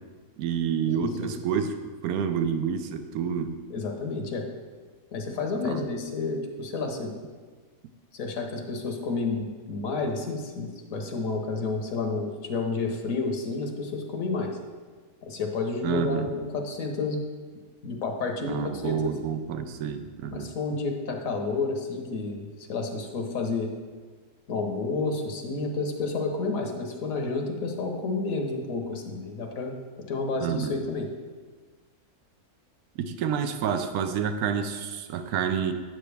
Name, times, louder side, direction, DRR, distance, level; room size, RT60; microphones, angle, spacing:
voice 1, 0.4-3.5 5.6-5.8 15.8-16.3 18.5-20.5 30.4-30.7 33.0-35.7, right 7 dB, 80° right, 8 dB, 1.1 m, -28 dB
voice 2, 0.9-1.3 3.7-4.5 5.1-7.1 8.1-14.6 15.2-17.3 17.8-19.1 20.3-23.7 24.5-29.7 30.1-31.1, left 3 dB, 65° left, 3 dB, 1.4 m, -30 dB
9.1 x 7.4 x 3.4 m, 1.5 s
omnidirectional pair, 1.6 m